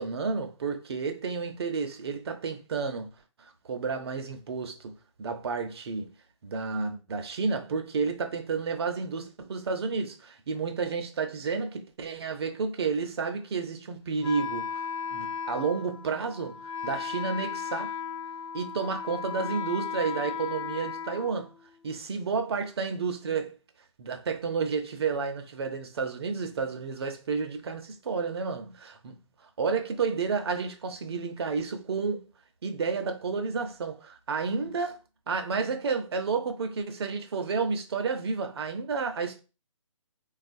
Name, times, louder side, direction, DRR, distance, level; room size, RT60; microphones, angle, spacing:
voice 1, 0.0-3.1 3.4-6.1 6.4-14.8 15.1-17.9 18.5-21.5 21.8-23.5 24.0-29.2 29.6-32.2 32.6-35.0 35.3-39.4, right 5 dB, 50° right, 0.7 m, -31 dB
Wind instrument woodwind instrument, 14.2-21.9, left 7 dB, 75° left, 0.4 m, -36 dB
3.6 x 2.4 x 2.6 m
hypercardioid pair, 155°, 17 cm